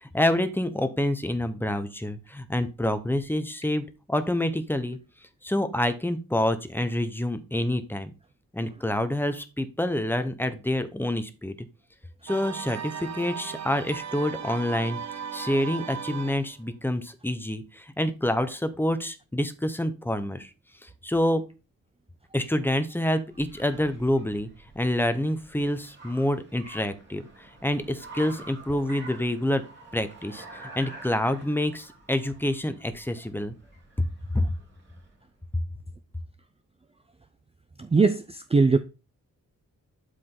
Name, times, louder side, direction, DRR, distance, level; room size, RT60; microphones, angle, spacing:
voice 1, 0.0-5.0 5.4-8.1 8.5-11.5 12.2-15.0 15.3-20.5 20.8-21.4 22.3-24.5 24.7-29.6 29.9-33.5 34.3-34.5, left 1 dB, 5° left, 0.9 m, -27 dB
sound 1, 12.3-16.6, right 7 dB, 55° right, 0.8 m, -36 dB
Car, 22.3-35.3, right 2 dB, 35° right, 3.3 m, -48 dB
voice 2, 37.8-38.8, right 4 dB, 20° right, 0.4 m, -21 dB
12.0 x 5.0 x 3.8 m
wide cardioid pair, 170°, 32 cm